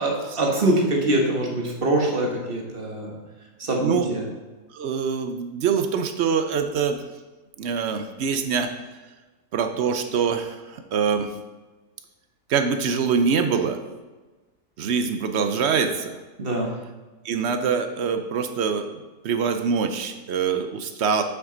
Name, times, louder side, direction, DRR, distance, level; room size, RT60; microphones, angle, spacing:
voice 1, 0.0-3.2 3.6-4.2 16.4-16.7, right 1 dB, 40° right, 0 dB, 1.4 m, -24 dB
voice 2, 4.7-7.0 7.6-8.7 9.5-11.3 12.5-13.8 14.8-16.2 17.2-18.9 19.2-21.2, right 6 dB, 60° right, 7 dB, 0.7 m, -24 dB
7.1 x 6.1 x 3.8 m, 1.2 s
omnidirectional pair, 1.6 m